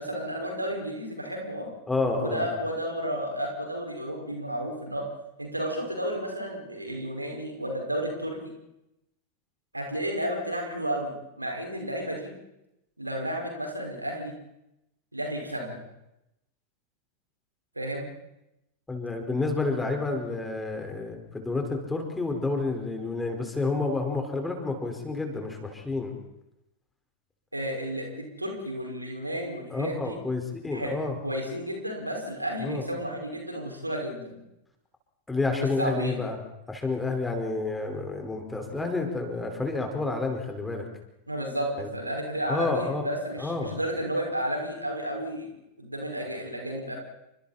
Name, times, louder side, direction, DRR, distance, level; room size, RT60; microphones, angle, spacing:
voice 1, 0.0-1.7 2.2-5.1 5.4-8.5 9.7-12.3 13.0-14.3 15.1-15.8 17.8-18.1 27.5-30.2 30.7-30.9 31.2-34.4 35.6-36.2 41.3-47.0, equal, 85° right, 1 dB, 5.5 m, -32 dB
voice 2, 1.9-2.5 18.9-26.1 29.7-31.2 32.6-32.8 35.3-36.4 36.7-40.8 41.8-41.9 42.5-43.1 43.4-43.8, left 3 dB, 10° left, 3 dB, 4.8 m, -29 dB
29.5 x 25.5 x 4.3 m, 0.89 s
figure-of-eight pair, 90°, 0 cm